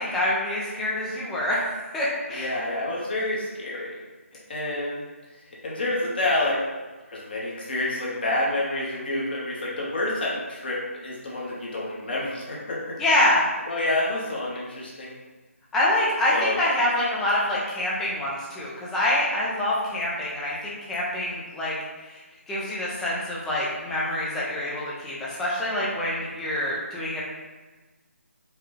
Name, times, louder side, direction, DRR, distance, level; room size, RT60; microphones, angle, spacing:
voice 1, 0.0-2.5 13.0-13.5 15.7-21.7 22.1-22.2 22.5-27.2, left 1 dB, 5° left, -7 dB, 0.3 m, -26 dB
voice 2, 2.3-4.0 4.5-5.0 5.6-6.6 7.1-13.0 13.7-15.2 16.3-16.6, left 2 dB, 40° left, -5 dB, 1.1 m, -28 dB
4.7 x 2.2 x 3.0 m, 1.2 s
figure-of-eight pair, 160°, 8 cm